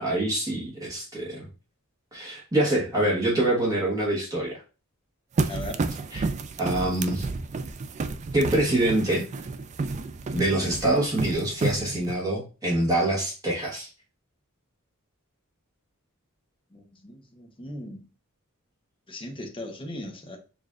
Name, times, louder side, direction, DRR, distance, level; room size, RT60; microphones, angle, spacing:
voice 1, 0.0-1.5 2.1-4.6 6.1-6.3 6.6-7.3 8.3-9.2 10.3-13.9, right 1 dB, 15° right, 1.2 m, -25 dB
sound 1, 5.4-12.1, right 3 dB, 30° right, 0.3 m, -31 dB
voice 2, 5.5-5.9 16.7-18.1 19.1-20.4, left 1 dB, 25° left, 0.8 m, -38 dB
6.7 x 2.5 x 2.4 m
head